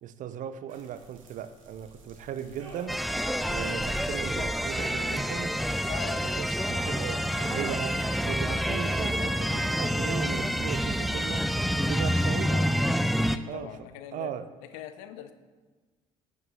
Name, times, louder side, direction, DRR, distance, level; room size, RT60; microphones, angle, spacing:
voice 1, 0.0-3.0 3.5-5.5 6.2-7.2 7.5-11.5 11.9-12.6 13.5-13.7 14.1-14.5, right 10 dB, 50° right, 13 dB, 0.5 m, -37 dB
sound 1, 0.7-12.3, right 2 dB, 85° right, 1.1 m, -50 dB
sound 2, 2.9-13.4, equal, ahead, 0.4 m, -28 dB
voice 2, 5.9-6.9 12.4-12.7 13.2-14.3 14.7-15.3, left 11 dB, 70° left, 10 dB, 0.6 m, -43 dB
13.5 x 8.4 x 2.4 m, 1.3 s
hypercardioid pair, 55°, 17 cm